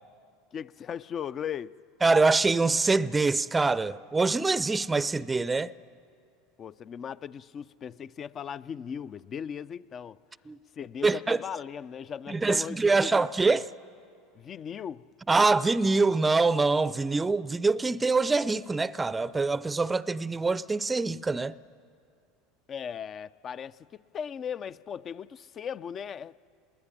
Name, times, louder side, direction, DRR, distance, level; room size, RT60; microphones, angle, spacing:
voice 1, 0.5-1.7 6.6-10.2 10.8-13.6 14.4-15.0 22.7-23.9 24.1-26.3, left 8 dB, 35° left, 0.6 m, -38 dB
voice 2, 2.0-5.7 10.5-10.6 11.0-11.4 12.3-13.7 15.3-21.5, right 3 dB, 15° right, 0.6 m, -24 dB
25.0 x 20.5 x 9.9 m
hypercardioid pair, 95°, 0 cm